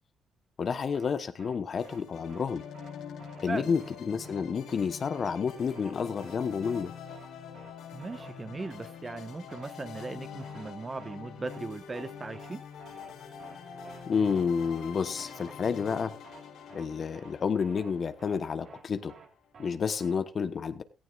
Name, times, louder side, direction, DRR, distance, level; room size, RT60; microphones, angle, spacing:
voice 1, 0.6-2.6 3.4-6.9 14.1-16.2 16.7-19.1 19.6-20.8, left 6 dB, 50° left, 12 dB, 1.1 m, -30 dB
sound 1, 0.9-1.1 1.4-1.6 1.8-2.0 2.3-2.5 2.7-2.9 3.2-3.5 3.8-4.0 4.2-4.4 4.7-4.9 5.1-5.3 5.6-5.9 6.2-6.4 6.6-6.8 7.1-7.3 7.5-7.7 8.0-8.3 8.6-8.8 9.1-9.2 9.5-9.7 9.9-10.1 10.4-10.7 11.0-11.2 11.4-11.6 11.9-12.1 12.3-12.5 12.8-13.1 13.4-13.6 13.8-14.0 14.3-14.5 14.7-14.9 15.2-15.5 15.8-16.0 16.2-16.4 16.7-16.9 17.1-17.3 17.6-17.9 18.2-18.4 18.7-18.8 19.1-19.3 19.5-19.7 20.0-20.2, right 5 dB, 55° right, 3.7 m, -52 dB
sound 2, 1.8-19.2, left 7 dB, 80° left, 5.1 m, -45 dB
voice 2, 7.9-12.6, right 3 dB, 25° right, 11 dB, 1.3 m, -38 dB
16.5 x 14.5 x 2.5 m, 0.32 s
cardioid pair, 90°, 0 cm